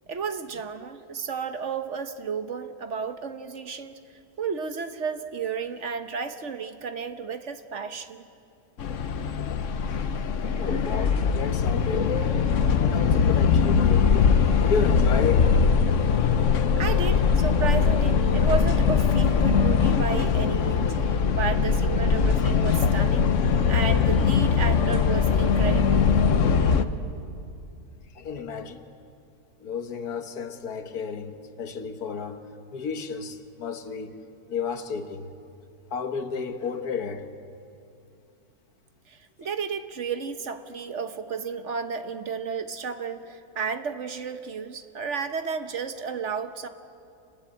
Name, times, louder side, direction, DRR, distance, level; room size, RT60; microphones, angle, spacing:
voice 1, 0.1-4.0 4.4-8.3 16.4-16.5 16.8-23.3 23.7-26.1 39.1-46.7, right 5 dB, 55° right, 1.3 m, -32 dB
sound 1, 8.8-26.9, left 6 dB, 60° left, 1.2 m, -21 dB
voice 2, 10.6-12.5 12.9-14.3 14.6-15.5 28.2-28.8 29.6-32.5 32.7-34.2 34.5-35.3 35.9-37.3, left 5 dB, 80° left, 1.8 m, -32 dB
27.5 x 20.0 x 8.6 m
omnidirectional pair, 1.6 m